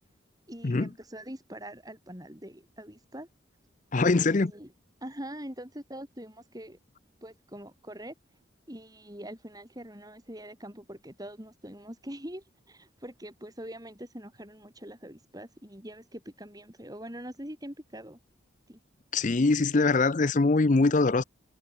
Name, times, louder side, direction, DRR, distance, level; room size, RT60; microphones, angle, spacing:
voice 1, 0.5-3.3 4.0-4.7 5.0-6.8 7.2-8.1 8.7-18.2 18.7-18.8, right 1 dB, 20° right, 7.3 m, -43 dB
voice 2, 3.9-4.5 19.1-21.2, left 3 dB, 40° left, 0.6 m, -23 dB
head